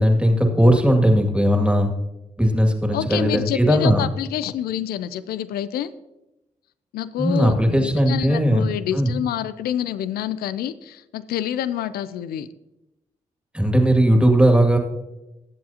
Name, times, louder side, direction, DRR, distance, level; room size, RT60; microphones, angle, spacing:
voice 1, 0.0-1.9 2.4-4.0 7.2-8.7 8.9-9.1 13.5-14.8, equal, 5° right, 3 dB, 2.2 m, -18 dB
voice 2, 2.9-5.9 6.9-12.5, left 10 dB, 85° left, 15 dB, 0.4 m, -27 dB
19.0 x 7.8 x 2.8 m, 0.96 s
supercardioid pair, 45°, 16 cm